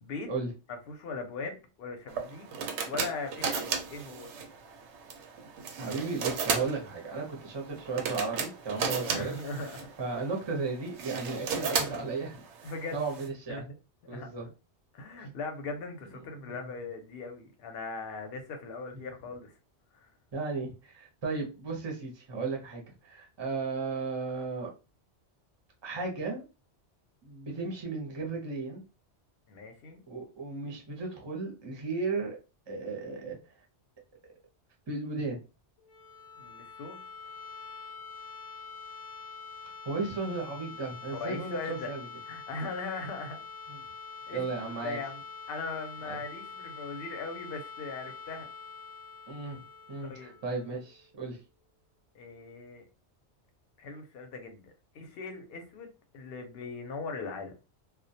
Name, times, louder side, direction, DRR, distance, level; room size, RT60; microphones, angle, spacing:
voice 1, 0.0-0.3 0.7-2.5 2.9-4.3 9.1-9.9 12.6-13.0 13.5-13.8 14.1-14.3 14.9-19.5 19.9-20.1 29.5-30.0 36.4-37.0 41.1-41.9 42.3-43.5 44.3-48.5 50.1-50.4 52.1-52.8 53.8-54.7 54.9-57.5, left 3 dB, 65° left, 0.8 m, -39 dB
sound 1, 2.1-13.3, right 6 dB, 85° right, 0.9 m, -35 dB
voice 2, 5.8-9.3 10.0-12.4 12.9-13.6 14.1-14.5 16.4-16.6 20.3-24.7 25.8-26.4 27.2-28.8 30.1-32.4 32.7-33.4 34.9-35.4 39.8-42.1 43.7-43.8 44.3-45.0 46.0-46.2 49.3-49.6 49.9-51.4, right 4 dB, 30° right, 0.6 m, -35 dB
sound 2, 35.8-51.6, left 5 dB, 90° left, 0.9 m, -45 dB
2.2 x 2.1 x 2.6 m
omnidirectional pair, 1.1 m